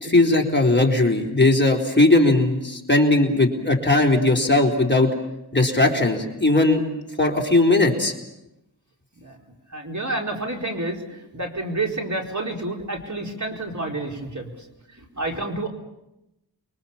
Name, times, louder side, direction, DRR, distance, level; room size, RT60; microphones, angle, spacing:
voice 1, 0.0-5.1 5.5-6.8 7.2-8.1, left 2 dB, 25° left, 0 dB, 4.0 m, -18 dB
voice 2, 9.7-15.7, right 2 dB, 45° right, 1 dB, 4.6 m, -29 dB
30.0 x 23.5 x 7.3 m, 0.91 s
wide cardioid pair, 55°, 42 cm